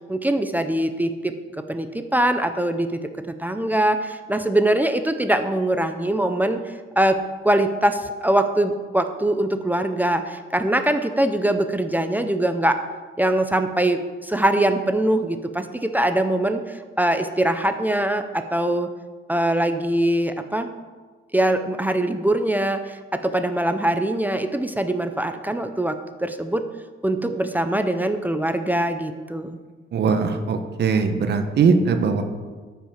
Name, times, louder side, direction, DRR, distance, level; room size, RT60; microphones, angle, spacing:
voice 1, 0.1-1.3 1.7-3.0 3.4-6.6 7.0-7.2 7.4-12.8 13.2-18.9 19.3-20.7 21.3-26.7 27.0-29.6, right 1 dB, 10° right, 8 dB, 0.5 m, -22 dB
voice 2, 29.9-32.2, right 5 dB, 55° right, 7 dB, 0.9 m, -20 dB
13.5 x 5.7 x 5.8 m, 1.4 s
wide cardioid pair, 175°, 21 cm